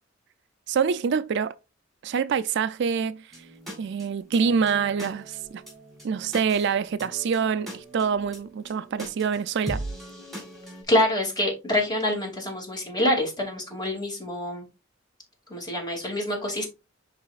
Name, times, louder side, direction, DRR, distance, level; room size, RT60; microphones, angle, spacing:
voice 1, 0.7-1.5 2.0-3.2 3.8-5.6 6.0-9.8, right 6 dB, 60° right, 0.4 m, -26 dB
sound 1, 3.3-10.8, right 1 dB, ahead, 3.6 m, -40 dB
voice 2, 10.9-14.7 15.5-16.7, left 1 dB, 20° left, 2.4 m, -26 dB
10.0 x 4.1 x 2.4 m
head